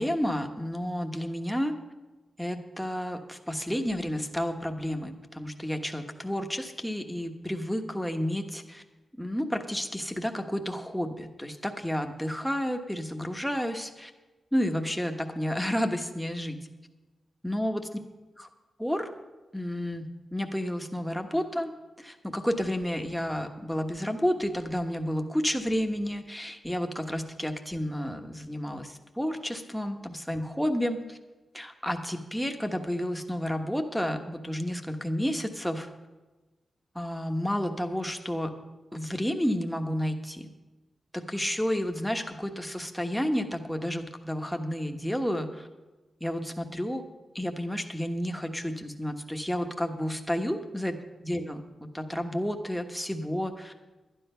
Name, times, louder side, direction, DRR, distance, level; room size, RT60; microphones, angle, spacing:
voice 1, 0.0-1.7 2.4-8.8 9.2-14.1 14.5-16.6 17.4-17.8 18.4-18.5 18.8-19.1 19.5-21.7 22.0-31.2 31.5-35.9 36.9-38.6 38.9-40.5 41.1-45.7 46.2-47.0 47.3-51.0 51.2-51.6 51.9-53.7, equal, ahead, 4 dB, 1.2 m, -31 dB
11.5 x 10.0 x 5.6 m, 1.2 s
cardioid pair, 85°, 0 cm